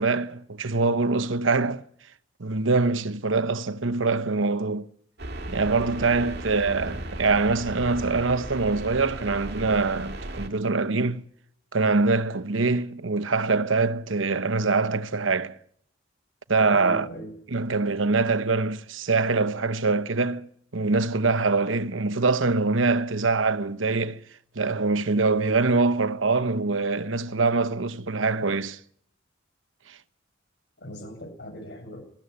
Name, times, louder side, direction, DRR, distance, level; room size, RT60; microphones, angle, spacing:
voice 1, 0.0-1.8 2.4-4.9 5.5-11.2 11.7-15.6 16.5-17.1 17.5-24.2 24.6-28.8 29.9-30.0, right 3 dB, 85° right, 1.0 m, -24 dB
sound 1, 5.2-10.5, right 1 dB, 60° right, 2.2 m, -36 dB
voice 2, 16.7-17.3 30.8-32.0, equal, 60° left, 7.9 m, -39 dB
20.0 x 15.0 x 9.8 m
head